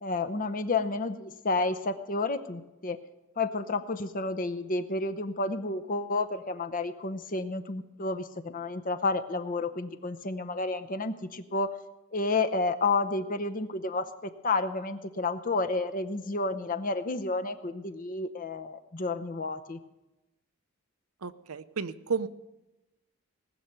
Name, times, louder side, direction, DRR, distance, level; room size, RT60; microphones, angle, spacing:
voice 1, 0.0-3.0 3.4-11.8 12.1-19.8, left 3 dB, 40° left, 9 dB, 0.7 m, -31 dB
voice 2, 21.2-22.3, right 5 dB, 80° right, 13 dB, 0.7 m, -32 dB
19.5 x 6.8 x 9.1 m, 1.0 s
head